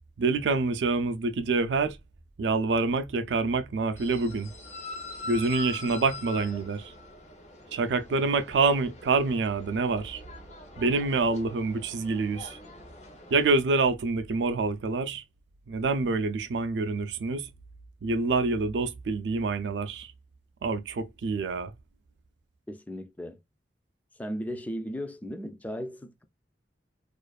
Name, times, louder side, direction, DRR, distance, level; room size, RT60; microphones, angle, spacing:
voice 1, 0.2-2.0 2.4-4.5 5.3-6.9 7.7-10.2 10.8-12.6 13.3-15.2 15.7-17.5 18.0-20.1 20.6-21.7, right 3 dB, 80° right, 0.4 m, -26 dB
sound 1, 4.0-13.6, left 2 dB, 45° left, 0.7 m, -44 dB
voice 2, 22.7-23.4 24.2-26.2, equal, 10° left, 0.3 m, -36 dB
2.4 x 2.2 x 2.4 m
head